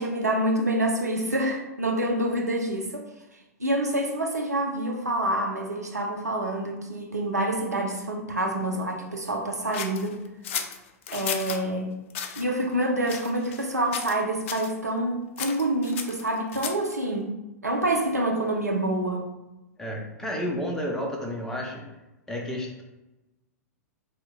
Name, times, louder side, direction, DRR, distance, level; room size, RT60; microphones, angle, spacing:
voice 1, 0.0-3.1 3.6-10.2 11.1-11.9 12.4-17.3 17.6-19.3, right 1 dB, 80° right, 0 dB, 0.6 m, -27 dB
sound 1, 9.7-11.6 12.1-12.4 13.0-13.7 13.9-14.2 14.5-14.7 15.4-16.9, left 7 dB, 50° left, 0.3 m, -34 dB
voice 2, 19.8-21.8 22.3-22.8, equal, 5° left, -1 dB, 0.6 m, -31 dB
2.9 x 2.2 x 3.5 m, 0.99 s
figure-of-eight pair, 100°, 9 cm